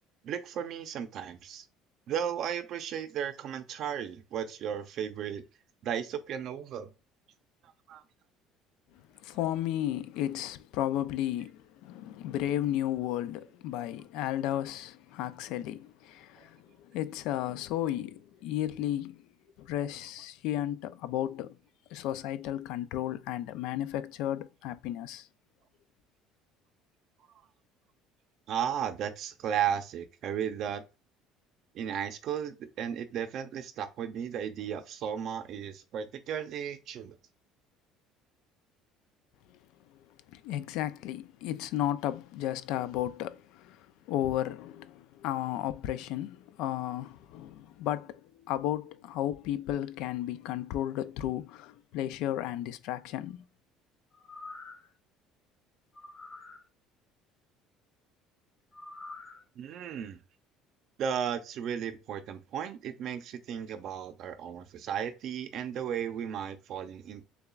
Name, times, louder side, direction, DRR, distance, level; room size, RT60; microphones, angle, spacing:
voice 1, 0.2-1.7 2.1-5.4 5.8-6.9 7.9-8.0 16.4-16.5 28.5-30.8 31.7-37.2 59.6-60.2 61.0-67.2, right 8 dB, 50° right, 0.6 m, -35 dB
voice 2, 9.2-19.2 19.6-21.6 21.9-25.3 40.3-53.4, left 12 dB, 70° left, 0.3 m, -34 dB
sound 1, 54.1-54.9 55.9-56.6 58.7-59.4 59.9-60.0, left 3 dB, 40° left, 1.4 m, -46 dB
6.7 x 2.3 x 2.4 m
cardioid pair, 150°, 0 cm